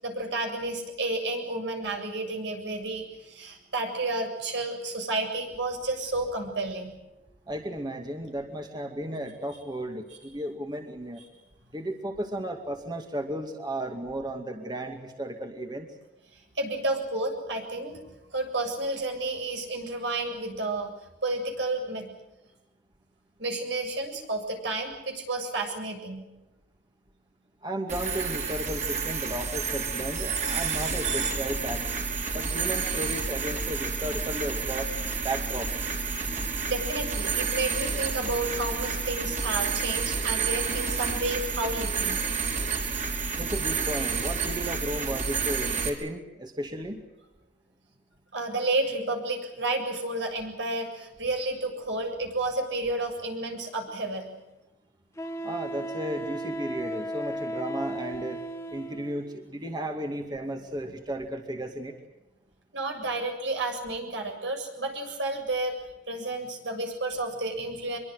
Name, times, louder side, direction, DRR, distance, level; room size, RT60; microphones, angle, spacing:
voice 1, 0.0-6.9 16.6-18.0 18.3-20.9 21.2-22.1 23.4-26.2 36.7-42.2 48.3-54.3 62.7-65.7 66.1-68.0, right 2 dB, 75° right, 4 dB, 7.4 m, -31 dB
voice 2, 7.5-11.2 11.7-15.9 27.6-31.8 32.3-34.9 35.2-35.7 43.4-47.0 55.4-58.4 58.7-61.9, right 1 dB, 25° right, 4 dB, 2.2 m, -34 dB
sound 1, 27.9-45.9, right 5 dB, 40° right, 4.9 m, -30 dB
Wind instrument woodwind instrument, 53.9-54.0 55.2-59.2, right 1 dB, 15° left, 2.0 m, -35 dB
25.5 x 23.0 x 7.9 m, 0.97 s
head